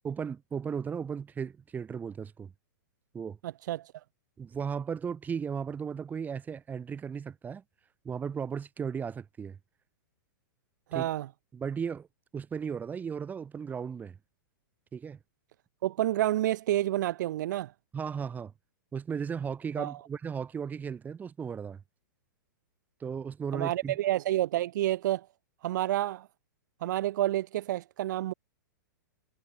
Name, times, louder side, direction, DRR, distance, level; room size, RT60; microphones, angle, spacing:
voice 1, 0.0-2.5 3.1-3.4 4.4-7.6 8.0-9.6 10.9-11.1 11.5-12.1 12.3-14.2 14.9-15.2 17.9-18.5 18.9-21.8 23.0-24.0, right 6 dB, 15° right, 6.5 m, -35 dB
voice 2, 3.4-3.9 10.9-11.3 15.8-17.7 19.8-20.0 23.5-25.3 25.6-26.3 26.8-28.3, right 14 dB, 60° right, 2.2 m, -29 dB
hypercardioid pair, 140°, 11 cm